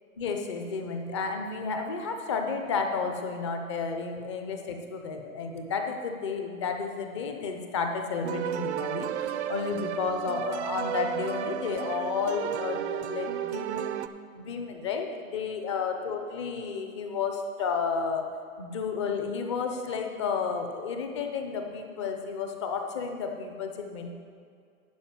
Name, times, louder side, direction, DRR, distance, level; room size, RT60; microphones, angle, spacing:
voice 1, 0.2-9.1 9.5-14.0 14.4-18.3 18.6-24.1, left 5 dB, 20° left, 4 dB, 0.5 m, -32 dB
sound 1, 8.2-14.1, right 10 dB, 55° right, 0.5 m, -33 dB
11.5 x 5.0 x 7.4 m, 2.3 s
hypercardioid pair, 160°, 42 cm